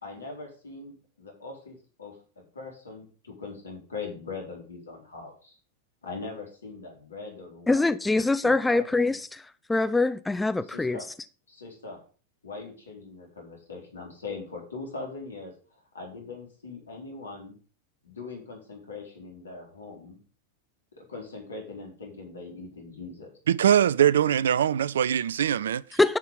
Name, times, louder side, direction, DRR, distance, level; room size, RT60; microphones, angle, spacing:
voice 1, 0.0-5.5 6.0-7.9 8.2-9.2 10.6-11.1 11.5-12.0 12.4-17.6 18.0-20.2 20.9-23.3, left 3 dB, 70° left, 4.1 m, -41 dB
voice 2, 7.7-9.4 9.7-11.0 26.0-26.2, left 3 dB, 10° left, 0.5 m, -24 dB
voice 3, 23.5-26.0, right 9 dB, 65° right, 0.4 m, -22 dB
10.5 x 6.2 x 5.4 m
figure-of-eight pair, 90°, 0 cm